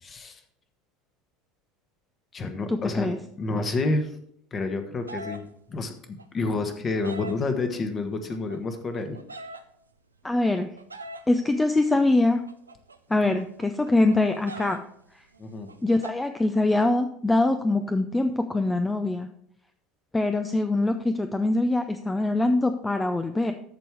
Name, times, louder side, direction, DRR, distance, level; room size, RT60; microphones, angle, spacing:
voice 1, 0.0-0.4 2.3-4.1 4.5-9.2 15.4-15.7, left 3 dB, 30° left, 7 dB, 1.4 m, -29 dB
voice 2, 2.7-3.2 10.2-10.7 11.3-12.4 13.1-14.8 15.1-15.2 15.8-19.3 20.1-23.5, left 2 dB, 10° left, 8 dB, 0.6 m, -23 dB
sound 1, 5.1-5.4 6.2-7.4 8.3-9.6 10.6-11.2 12.2-14.8 15.1-15.2 15.3-16.1, right 1 dB, 80° right, 0.6 m, -41 dB
13.5 x 4.6 x 4.7 m, 0.70 s
figure-of-eight pair, 70°, 0 cm